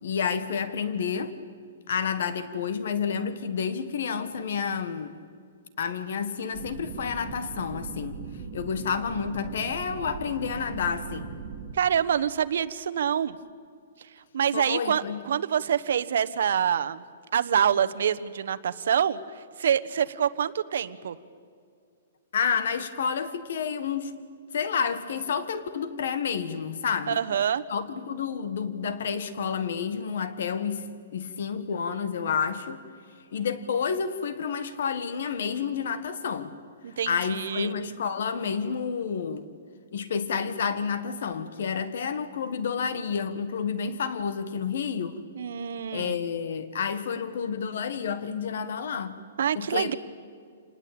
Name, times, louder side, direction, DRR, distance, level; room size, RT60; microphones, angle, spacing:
voice 1, 0.0-1.3 1.9-5.2 5.8-8.1 8.5-11.3 14.5-15.2 22.3-24.1 24.5-27.2 27.7-30.9 31.1-32.8 33.3-36.5 37.1-39.5 39.9-45.2 45.9-49.2 49.5-49.9, left 6 dB, 60° left, 12 dB, 1.4 m, -30 dB
sound 1, 6.5-11.7, right 6 dB, 30° right, 3.9 m, -39 dB
voice 2, 11.7-13.4 14.3-17.0 17.3-19.2 19.6-21.2 27.1-27.6 36.8-37.8 45.3-46.1 49.4-49.9, right 8 dB, 65° right, 11 dB, 1.1 m, -26 dB
28.0 x 19.5 x 8.9 m, 2.2 s
hypercardioid pair, 170°, 0 cm